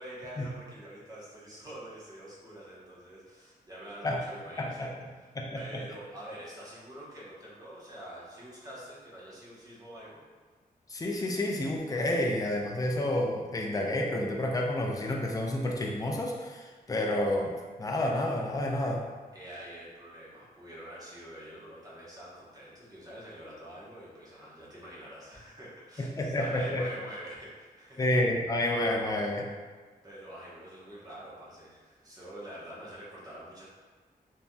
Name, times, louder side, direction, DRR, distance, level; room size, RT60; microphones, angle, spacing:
voice 1, 0.0-5.3 5.5-10.2 19.3-28.1 30.0-33.7, right 1 dB, 25° right, -7 dB, 0.9 m, -46 dB
voice 2, 4.6-4.9 5.3-5.6 10.9-17.5 17.8-19.0 26.0-26.8 28.0-29.5, left 1 dB, 20° left, 0 dB, 0.4 m, -29 dB
3.2 x 2.7 x 2.2 m, 1.4 s
wide cardioid pair, 90°, 16 cm